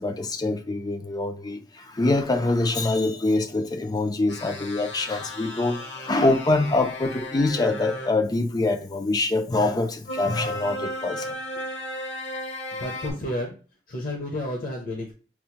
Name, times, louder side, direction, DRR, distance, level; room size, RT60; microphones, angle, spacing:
voice 1, 0.0-11.4, left 2 dB, 20° left, 0.3 m, -25 dB
sound 1, 4.3-8.1 10.1-13.1, left 1 dB, 70° left, 1.0 m, -35 dB
voice 2, 12.7-13.5 13.9-15.1, left 1 dB, 50° left, 0.7 m, -31 dB
6.0 x 2.1 x 2.8 m
head